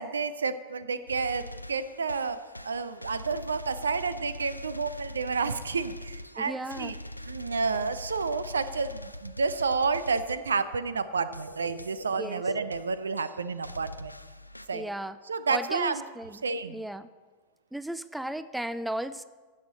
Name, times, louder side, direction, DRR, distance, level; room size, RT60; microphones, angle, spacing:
voice 1, 0.0-6.9 7.3-14.1 14.7-14.9 15.3-16.0 16.4-16.8, right 4 dB, 70° right, 14 dB, 0.5 m, -30 dB
sound 1, 1.1-10.5 11.3-12.3 12.7-12.9 13.2-14.7, equal, 90° left, 0.3 m, -43 dB
voice 2, 6.4-6.9 12.2-12.4 14.7-15.2 15.5-16.4 16.7-17.1 17.7-19.2, right 1 dB, 5° right, 15 dB, 0.3 m, -35 dB
15.5 x 6.4 x 4.0 m, 1.4 s
figure-of-eight pair, 90°, 0 cm